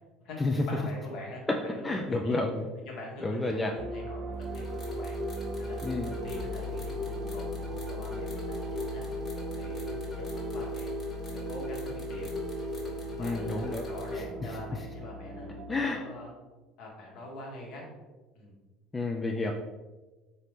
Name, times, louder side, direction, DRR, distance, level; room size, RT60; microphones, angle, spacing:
voice 1, 0.7-2.4 2.8-5.2 5.6-9.0 9.5-11.1 11.5-16.3 16.8-17.8 18.3-18.5, left 1 dB, 60° left, -2 dB, 1.2 m, -44 dB
voice 2, 1.8-2.7 3.2-3.7 5.8-6.1 13.2-13.8 15.7-16.0 18.9-19.5, left 3 dB, 20° left, 2 dB, 0.3 m, -30 dB
sound 1, 3.8-15.9, right 2 dB, 50° right, 0.4 m, -38 dB
sound 2, 4.4-14.2, left 2 dB, 40° left, 1.2 m, -39 dB
4.0 x 2.6 x 3.2 m, 1.2 s
hypercardioid pair, 65°, 0 cm